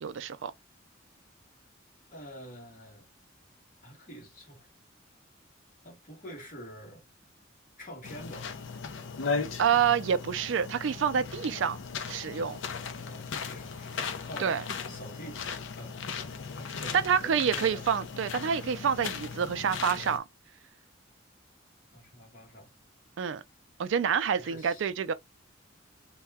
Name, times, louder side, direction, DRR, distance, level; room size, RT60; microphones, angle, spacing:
voice 1, 0.0-0.5 9.6-11.8 12.1-12.6 14.4-14.6 16.9-20.2 23.2-23.4 23.8-25.1, right 7 dB, 70° right, 0.4 m, -27 dB
voice 2, 2.1-3.1 3.8-4.7 5.8-7.0 7.8-8.5 12.9-14.5 14.9-16.2 16.5-17.8 21.9-22.7 24.4-24.9, equal, 45° left, 1.3 m, -47 dB
sound 1, 8.0-20.2, left 5 dB, 75° left, 0.5 m, -37 dB
2.7 x 2.2 x 3.3 m
head